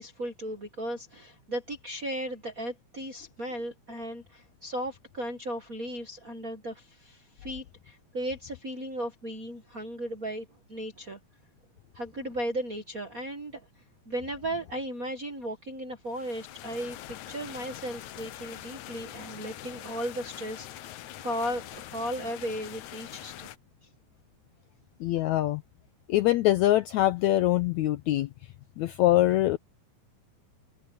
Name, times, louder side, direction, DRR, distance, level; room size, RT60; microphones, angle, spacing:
voice 1, 0.0-11.2 11.9-13.7 14.0-23.5, right 1 dB, 50° right, 1.0 m, -36 dB
sound 1, 16.1-23.6, left 13 dB, 70° left, 2.0 m, -44 dB
voice 2, 25.0-25.6 26.1-28.3 28.8-29.6, left 15 dB, 90° left, 1.6 m, -23 dB
omnidirectional pair, 4.0 m